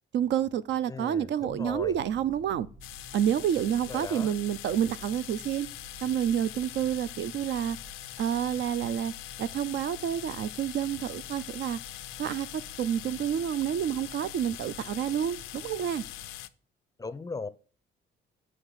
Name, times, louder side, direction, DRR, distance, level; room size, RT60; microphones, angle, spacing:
voice 1, 0.1-2.7 3.1-5.7 6.0-7.8 8.2-9.1 9.4-11.8 12.2-16.0, right 9 dB, 65° right, 0.4 m, -29 dB
voice 2, 0.9-1.9 3.9-4.3 17.0-17.5, left 4 dB, 20° left, 0.4 m, -37 dB
sound 1, 1.4-16.4, right 1 dB, 90° right, 1.4 m, -52 dB
sound 2, 2.8-16.5, left 15 dB, 90° left, 0.5 m, -43 dB
7.8 x 3.3 x 5.5 m
cardioid pair, 90°, 20 cm